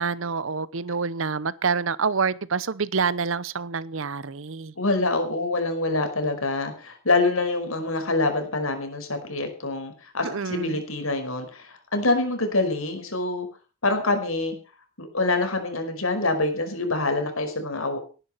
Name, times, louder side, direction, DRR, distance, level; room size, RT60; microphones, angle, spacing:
voice 1, 0.0-4.7 10.2-10.8, right 5 dB, 65° right, 0.8 m, -27 dB
voice 2, 4.8-13.5 13.8-14.6 15.0-18.0, left 2 dB, 80° left, 5.2 m, -25 dB
19.0 x 10.5 x 5.6 m
head